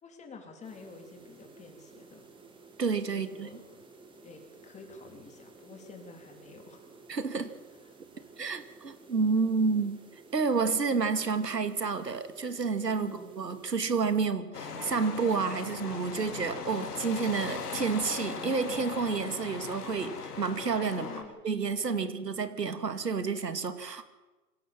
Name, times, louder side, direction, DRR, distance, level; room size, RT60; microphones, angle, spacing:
voice 1, 0.0-2.3 3.1-3.8 4.2-6.9 7.8-8.3 13.0-13.3 20.9-21.4 21.9-22.1, left 4 dB, 15° left, 4 dB, 3.7 m, -49 dB
sound 1, 0.6-14.3, right 3 dB, 10° right, 2.9 m, -54 dB
voice 2, 2.8-3.5 7.1-7.5 8.4-10.0 10.3-21.1 21.4-24.0, right 5 dB, 85° right, 10 dB, 2.4 m, -30 dB
sound 2, 14.5-21.2, left 5 dB, 70° left, 3.7 m, -39 dB
25.5 x 16.5 x 7.3 m, 1.1 s
hypercardioid pair, 125°, 48 cm